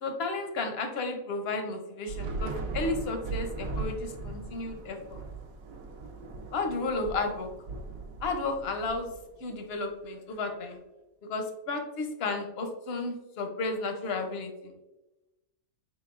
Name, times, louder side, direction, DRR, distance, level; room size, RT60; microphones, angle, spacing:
voice 1, 0.0-5.2 6.5-7.5 8.2-9.1 9.4-10.8 11.3-14.7, left 3 dB, 55° left, 5 dB, 0.7 m, -33 dB
Thunder / Rain, 2.1-9.6, right 3 dB, 70° right, 1.0 m, -38 dB
4.4 x 4.0 x 2.4 m, 0.97 s
omnidirectional pair, 1.6 m